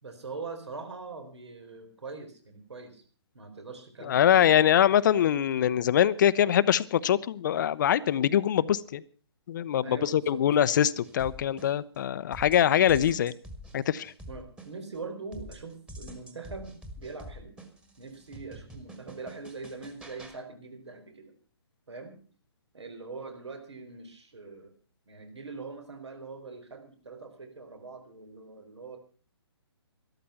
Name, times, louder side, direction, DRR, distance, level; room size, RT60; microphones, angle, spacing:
voice 1, 0.0-3.0 3.3-4.5 9.8-10.4 12.7-13.0 14.3-17.5 18.0-21.3 21.9-22.2 22.7-24.7 25.1-29.0, right 4 dB, 80° right, 6 dB, 4.3 m, -42 dB
voice 2, 4.0-9.0 9.5-13.3 13.7-14.1, left 10 dB, 45° left, 17 dB, 0.7 m, -23 dB
sound 1, 11.0-12.0 12.3-15.0 15.3-20.4, equal, 5° right, 1.7 m, -46 dB
13.0 x 13.0 x 5.8 m, 0.40 s
hypercardioid pair, 140°, 14 cm